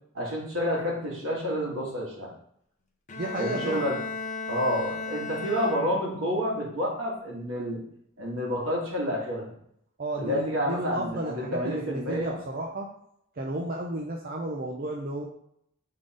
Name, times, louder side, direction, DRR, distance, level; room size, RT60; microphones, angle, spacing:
voice 1, 0.1-2.3 3.4-4.0 4.5-7.8 8.2-9.5 10.2-12.4, equal, 75° right, -4 dB, 2.1 m, -29 dB
Bowed string instrument, 3.1-6.3, left 4 dB, 35° left, 0.6 m, -35 dB
voice 2, 3.2-3.9 10.0-12.9 13.4-15.2, right 1 dB, 45° right, -1 dB, 0.6 m, -33 dB
6.5 x 3.8 x 3.8 m, 0.72 s
head